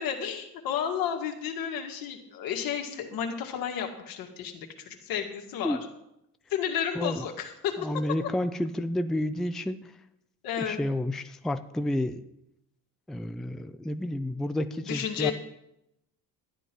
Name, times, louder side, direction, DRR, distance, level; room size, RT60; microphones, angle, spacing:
voice 1, 0.0-5.8 6.5-8.0 10.4-10.8 14.8-15.3, left 8 dB, 75° left, 2 dB, 2.1 m, -32 dB
voice 2, 7.8-9.9 10.6-12.3 13.1-15.3, left 1 dB, ahead, 9 dB, 0.4 m, -30 dB
12.5 x 9.7 x 4.6 m, 0.83 s
cardioid pair, 130°, 35 cm